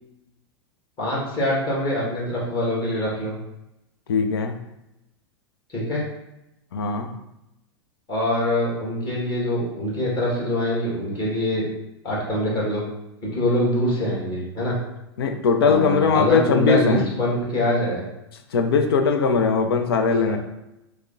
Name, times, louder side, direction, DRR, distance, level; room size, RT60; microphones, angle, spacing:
voice 1, 1.0-3.3 5.7-6.0 8.1-11.7 12.0-12.8 13.2-14.8 15.6-18.1 20.2-20.4, left 1 dB, 35° left, -6 dB, 1.4 m, -24 dB
voice 2, 4.1-4.6 6.7-7.2 15.2-17.1 18.5-20.4, left 5 dB, 65° left, 6 dB, 0.4 m, -20 dB
4.7 x 2.1 x 2.5 m, 0.88 s
figure-of-eight pair, 90°, 14 cm